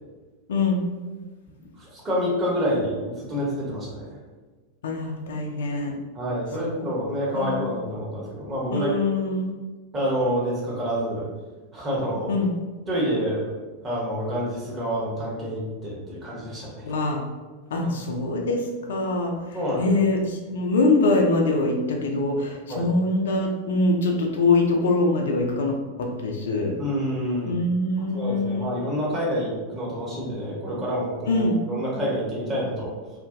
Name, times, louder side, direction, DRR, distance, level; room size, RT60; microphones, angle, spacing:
voice 1, 0.5-0.8 4.8-5.9 6.6-6.9 7.3-7.8 8.7-9.5 12.3-12.5 16.8-17.2 17.7-18.6 18.9-26.7 27.5-28.7 31.3-31.5, left 2 dB, 60° left, 1 dB, 0.3 m, -24 dB
voice 2, 1.8-4.1 6.1-9.0 9.9-11.2 11.7-12.3 12.9-13.4 13.8-16.8 17.8-17.9 19.5-20.0 22.7-22.8 26.8-27.5 28.1-32.9, equal, 20° right, -5 dB, 0.9 m, -27 dB
2.5 x 2.1 x 2.5 m, 1.3 s
figure-of-eight pair, 90°, 0 cm